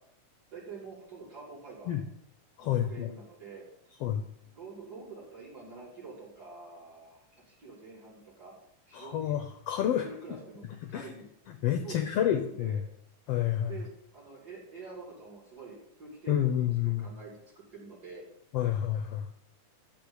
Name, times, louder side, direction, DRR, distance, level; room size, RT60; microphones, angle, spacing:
voice 1, 0.5-1.9 2.6-3.6 4.4-7.2 7.6-8.5 8.9-9.4 9.9-11.2 11.8-12.8 13.7-16.4 16.6-18.2, right 4 dB, 30° right, -3 dB, 5.8 m, -47 dB
voice 2, 2.6-3.1 4.0-4.2 8.9-10.1 10.9-11.1 11.6-12.8 13.3-13.8 16.3-17.1 18.5-19.3, left 10 dB, 65° left, 8 dB, 1.7 m, -29 dB
14.5 x 5.3 x 9.6 m, 0.75 s
omnidirectional pair, 3.6 m